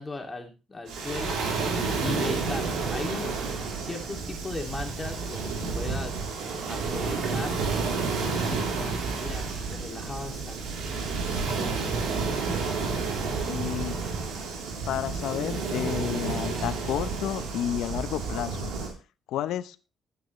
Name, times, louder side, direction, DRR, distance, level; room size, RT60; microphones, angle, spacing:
voice 1, 0.0-1.4 2.0-3.4 3.8-6.2 6.7-7.6 8.3-10.8, left 3 dB, 20° left, 2 dB, 2.6 m, -37 dB
Waves surf, 0.9-18.9, right 4 dB, 85° right, 3.4 m, -30 dB
voice 2, 13.5-14.0 14.9-18.7 19.3-19.8, left 11 dB, 85° left, 13 dB, 0.8 m, -31 dB
12.5 x 9.4 x 3.2 m, 0.30 s
cardioid pair, 90°, 0 cm